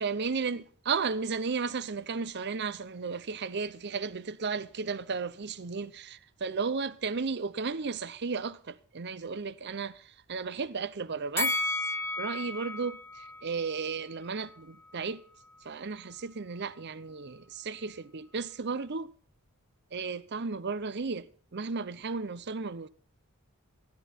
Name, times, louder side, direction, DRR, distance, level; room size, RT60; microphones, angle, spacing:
voice 1, 0.0-10.0 10.3-11.6 12.2-15.2 15.6-19.1 19.9-21.3 21.5-22.9, right 5 dB, 50° right, 0.7 m, -34 dB
Bell, 11.4-14.6 14.9-15.0, left 2 dB, 10° left, 0.7 m, -34 dB
14.0 x 12.5 x 4.4 m
head